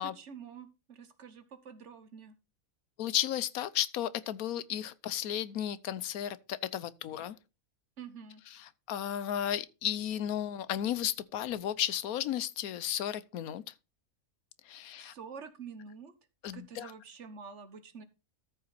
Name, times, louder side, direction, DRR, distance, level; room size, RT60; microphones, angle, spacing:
voice 1, 0.0-2.4 8.0-8.4 15.0-16.1 16.5-18.0, right 6 dB, 55° right, 1.4 m, -47 dB
voice 2, 3.0-7.4 8.9-13.6 14.7-15.1 16.4-16.9, left 11 dB, 90° left, 1.2 m, -34 dB
13.5 x 5.7 x 4.0 m
omnidirectional pair, 1.5 m